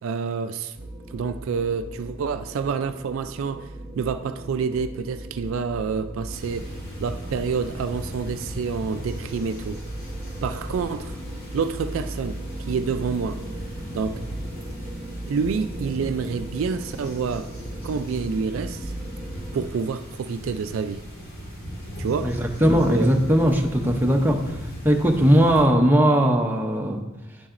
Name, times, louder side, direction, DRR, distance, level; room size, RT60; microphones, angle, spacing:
voice 1, 0.0-0.7 1.1-3.7 4.0-6.7 7.0-9.8 10.4-11.2 11.5-12.4 12.7-13.4 13.9-14.2 15.3-17.5 17.8-18.9 19.5-21.0 22.0-22.4 22.6-23.1, right 5 dB, 70° right, 0.3 m, -28 dB
sound 1, 0.8-19.7, right 1 dB, 40° right, 1.0 m, -37 dB
sound 2, 6.3-25.6, equal, 50° left, 1.8 m, -38 dB
voice 2, 22.2-24.6 24.8-27.0, equal, 10° right, 0.6 m, -19 dB
9.1 x 7.0 x 2.5 m
head